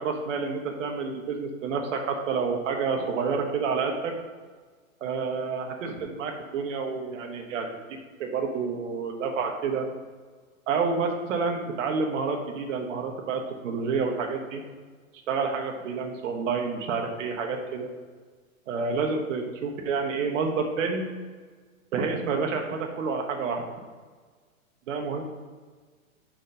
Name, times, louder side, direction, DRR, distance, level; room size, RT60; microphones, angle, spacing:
voice 1, 0.0-4.1 5.0-7.7 8.2-9.9 10.7-14.6 15.3-17.9 18.7-21.0 21.9-23.6 24.9-25.2, right 5 dB, 60° right, 2 dB, 1.3 m, -29 dB
6.3 x 4.4 x 6.3 m, 1.5 s
hypercardioid pair, 145°, 42 cm